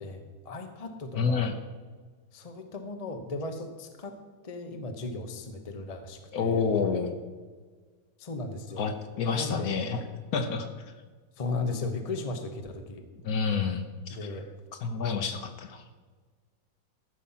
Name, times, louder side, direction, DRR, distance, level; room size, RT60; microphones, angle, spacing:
voice 1, 0.0-1.5 2.3-4.2 4.4-6.6 8.2-8.9 9.3-9.9 11.4-13.0 14.1-14.5, left 3 dB, 35° left, 6 dB, 0.6 m, -36 dB
voice 2, 1.1-1.6 6.3-7.2 8.8-10.0 10.3-10.7 13.2-14.2 14.8-15.8, left 5 dB, 60° left, 7 dB, 1.2 m, -28 dB
13.5 x 5.7 x 5.7 m, 1.4 s
omnidirectional pair, 2.0 m